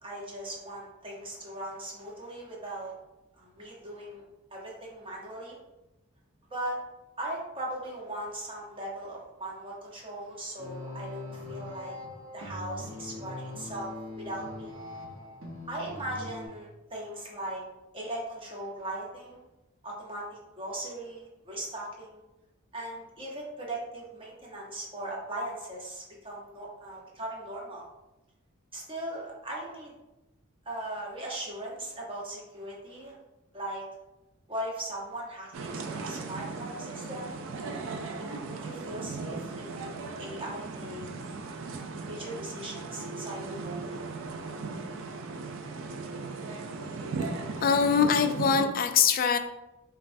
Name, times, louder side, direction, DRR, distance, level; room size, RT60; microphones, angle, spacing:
voice 1, 0.0-2.9 3.4-4.2 4.5-5.6 6.5-6.8 7.2-12.0 12.3-14.7 15.7-17.6 17.9-19.4 19.8-22.2 22.7-27.9 28.7-29.9 30.6-33.2 33.5-33.8 34.5-37.3 38.2-41.1 42.0-43.9, right 1 dB, 25° right, -3 dB, 0.9 m, -39 dB
sound 1, 10.6-16.5, left 2 dB, 90° right, 0.9 m, -41 dB
sound 2, 35.5-48.7, right 3 dB, 70° right, 0.4 m, -37 dB
voice 2, 47.6-49.4, left 6 dB, 45° left, 8 dB, 0.3 m, -23 dB
5.2 x 2.4 x 2.6 m, 0.98 s
head